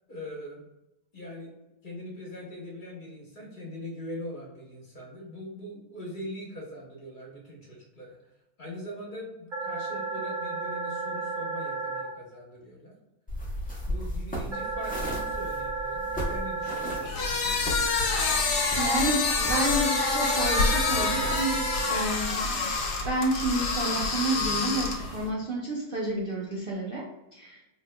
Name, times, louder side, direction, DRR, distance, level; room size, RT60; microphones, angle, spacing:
voice 1, 0.1-0.6 1.1-1.5 1.8-8.2 8.6-12.9 13.9-17.6, left 1 dB, 35° left, -4 dB, 1.1 m, -41 dB
sound 1, 9.5-12.0 14.5-17.0 19.5-22.0, right 3 dB, 45° right, 0.7 m, -33 dB
sound 2, 13.3-23.0, equal, 10° left, 0.5 m, -38 dB
sound 3, 17.0-25.2, left 3 dB, 90° left, 1.4 m, -27 dB
voice 2, 18.8-22.7 23.0-27.6, right 1 dB, 80° right, -3 dB, 0.5 m, -30 dB
4.5 x 3.1 x 2.2 m, 0.97 s
omnidirectional pair, 1.7 m